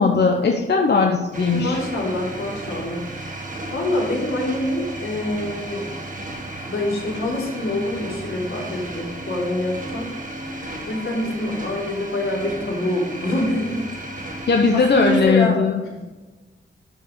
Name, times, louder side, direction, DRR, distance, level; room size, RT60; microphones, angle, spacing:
voice 1, 0.0-1.8 14.5-15.8, left 4 dB, 55° left, 2 dB, 0.8 m, -18 dB
sound 1, 1.3-15.2, right 1 dB, 40° right, 1.8 m, -34 dB
voice 2, 1.5-3.0 3.2-5.8 6.7-10.1 10.9-13.9 14.2-14.4 14.7-15.6 15.8-16.0, left 1 dB, 80° left, -4 dB, 3.2 m, -25 dB
12.0 x 4.9 x 5.1 m, 1.2 s
wide cardioid pair, 135°, 21 cm